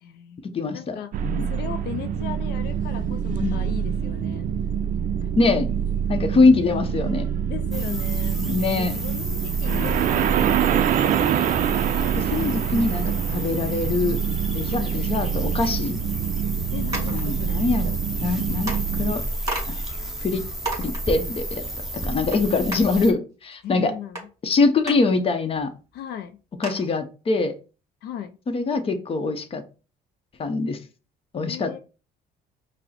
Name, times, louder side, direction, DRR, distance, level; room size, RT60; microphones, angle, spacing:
voice 1, 0.0-4.5 7.5-8.4 8.8-11.0 14.7-15.0 16.7-17.6 23.6-24.3 25.9-26.4 28.0-28.4 31.4-31.8, left 9 dB, 75° left, 0.4 m, -37 dB
voice 2, 0.5-1.5 3.4-3.6 5.4-5.7 6.1-7.3 8.4-8.9 9.7-9.9 12.2-14.2 14.5-16.0 17.1-17.9 18.2-18.7 19.0-19.2 19.7-19.8 20.2-20.5 20.7-21.6 22.0-23.9 24.4-25.7 26.6-27.5 28.5-29.6 30.4-30.8 31.3-31.8, left 3 dB, 35° left, 0.8 m, -23 dB
sound 1, 1.1-19.2, right 8 dB, 55° right, 0.4 m, -25 dB
sound 2, 7.7-23.1, right 1 dB, ahead, 0.9 m, -32 dB
sound 3, 16.9-17.2 18.2-18.3 18.7-18.8 19.5-19.7 20.1-20.2 20.6-21.0 22.3-22.4 22.7-22.8 24.1-24.2 24.9-25.0 25.6-25.7 25.9-26.0 26.6-26.9, right 2 dB, 20° right, 2.0 m, -30 dB
5.2 x 2.1 x 4.2 m
cardioid pair, 110°, 17 cm